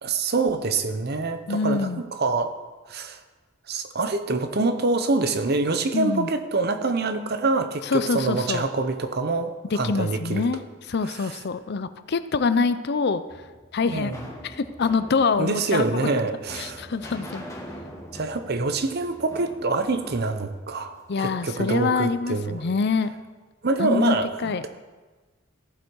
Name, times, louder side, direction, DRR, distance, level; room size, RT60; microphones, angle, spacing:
voice 1, 0.0-2.5 2.9-3.2 3.7-10.4 13.9-14.2 15.4-16.8 18.1-22.6 23.6-24.7, right 3 dB, 55° right, 9 dB, 0.8 m, -25 dB
voice 2, 1.5-2.0 5.9-6.3 7.8-8.6 9.6-13.2 13.7-14.1 14.4-15.8 16.5-17.5 21.1-23.1 23.8-24.7, left 4 dB, 55° left, 12 dB, 0.5 m, -25 dB
sound 1, 13.3-21.4, equal, 15° left, 1.6 m, -43 dB
14.0 x 8.0 x 4.7 m, 1.3 s
head